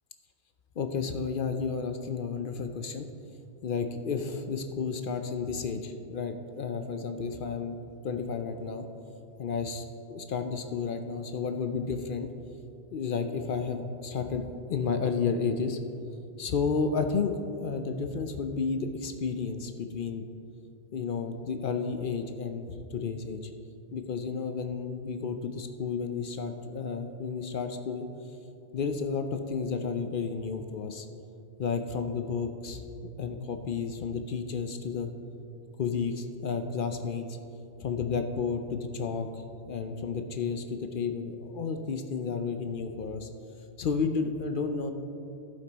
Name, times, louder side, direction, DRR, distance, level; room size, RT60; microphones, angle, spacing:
voice 1, 0.8-3.1 3.6-7.8 8.0-8.9 9.4-12.3 12.9-14.4 14.7-15.8 16.4-20.3 20.9-23.4 23.9-28.1 28.7-31.1 31.6-32.8 33.2-35.1 35.8-37.2 37.8-43.3 43.8-44.9, left 5 dB, 55° left, 7 dB, 0.7 m, -32 dB
15.5 x 5.3 x 4.0 m, 2.7 s
omnidirectional pair, 1.2 m